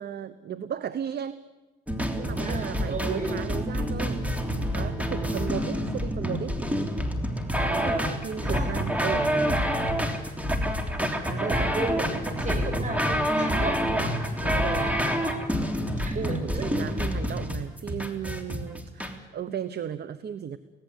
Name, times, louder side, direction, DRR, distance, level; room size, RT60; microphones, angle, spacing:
voice 1, 0.0-1.4 2.1-4.2 4.7-6.6 7.5-9.3 11.3-11.7 14.4-14.9 15.5-15.6 16.1-20.6, right 8 dB, 55° right, 14 dB, 1.0 m, -35 dB
sound 1, 1.9-19.1, equal, 5° right, 3.4 m, -27 dB
voice 2, 2.4-3.4 5.2-5.8 8.4-8.9 11.3-15.6 16.0-16.7 17.0-17.1, right 3 dB, 40° right, 6 dB, 6.9 m, -35 dB
25.0 x 18.0 x 8.4 m, 1.2 s
cardioid pair, 90°, 20 cm